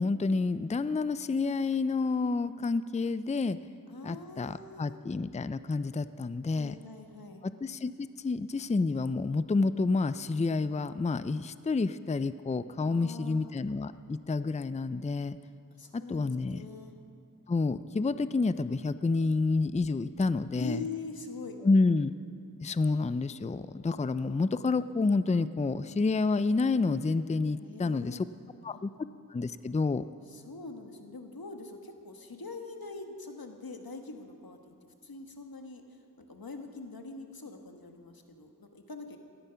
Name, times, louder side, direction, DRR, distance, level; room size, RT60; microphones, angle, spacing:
voice 1, 0.0-3.6 4.0-6.7 7.6-15.4 15.9-16.6 17.5-20.8 21.6-22.1 22.6-28.3 28.6-28.9 29.3-30.1, left 3 dB, 20° left, 14 dB, 0.4 m, -29 dB
voice 2, 3.9-5.0 6.5-7.5 12.8-13.6 15.8-17.0 20.6-21.6 27.6-28.2 28.7-28.8 30.3-35.8 36.2-39.2, left 3 dB, 90° left, 5 dB, 1.3 m, -43 dB
17.0 x 13.0 x 5.7 m, 2.5 s
wide cardioid pair, 45°, 35 cm